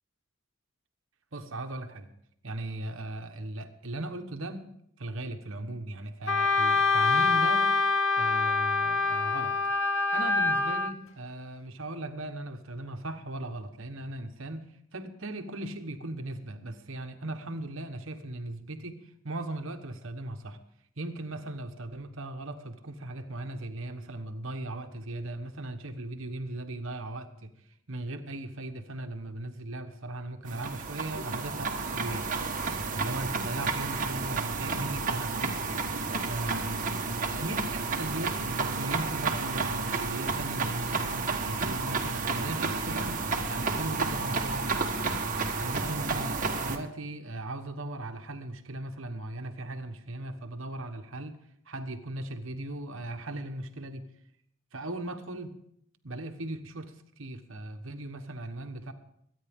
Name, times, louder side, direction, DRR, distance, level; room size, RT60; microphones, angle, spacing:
voice 1, 1.3-2.1 2.4-4.7 5.0-7.7 8.2-9.6 10.1-20.6 21.0-27.5 27.9-32.3 32.9-35.6 36.3-36.8 37.4-43.2 43.5-45.2 45.6-46.3 46.6-51.4 51.7-54.1 54.7-55.5 56.0-58.9, right 2 dB, 60° right, 6 dB, 1.2 m, -38 dB
Wind instrument woodwind instrument, 6.3-10.9, left 4 dB, 65° left, 0.9 m, -25 dB
sound 1, 30.5-46.8, right 4 dB, 35° right, 1.4 m, -31 dB
23.5 x 9.5 x 3.7 m, 0.72 s
head